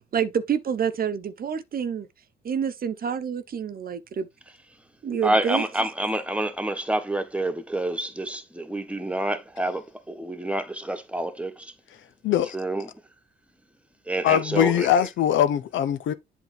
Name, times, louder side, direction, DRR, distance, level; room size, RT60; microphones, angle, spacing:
voice 1, 0.1-2.1 2.4-4.3 5.0-5.6, right 7 dB, 50° right, 0.9 m, -27 dB
voice 2, 5.2-11.7 12.3-12.9 14.1-15.1, right 1 dB, 5° right, 1.3 m, -28 dB
voice 3, 12.2-12.6 14.2-16.1, left 11 dB, 75° left, 0.8 m, -22 dB
8.0 x 3.7 x 4.3 m
cardioid pair, 90°, 20 cm